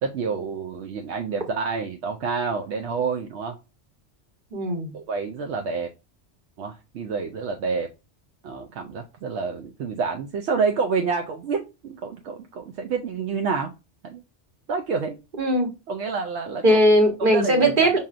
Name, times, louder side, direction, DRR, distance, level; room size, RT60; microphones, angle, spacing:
voice 1, 0.0-3.6 4.9-5.9 6.6-7.9 8.4-13.7 14.0-14.2 14.7-15.1 15.9-16.8 17.2-18.0, right 5 dB, 75° right, 0.8 m, -28 dB
voice 2, 4.5-4.9 15.4-15.7 16.6-18.0, right 1 dB, 50° right, 1.3 m, -19 dB
5.5 x 2.7 x 2.4 m
omnidirectional pair, 1.2 m